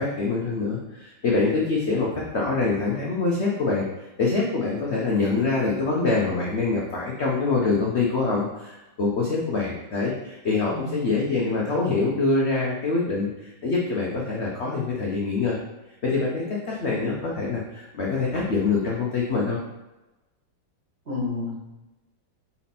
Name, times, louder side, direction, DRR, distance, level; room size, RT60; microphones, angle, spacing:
voice 1, 0.0-2.1 2.3-15.6 16.0-19.6, left 3 dB, 55° left, -3 dB, 0.8 m, -25 dB
voice 2, 10.7-11.0 21.1-21.5, left 3 dB, 30° right, -7 dB, 2.1 m, -30 dB
5.8 x 4.2 x 4.2 m, 1.0 s
omnidirectional pair, 2.2 m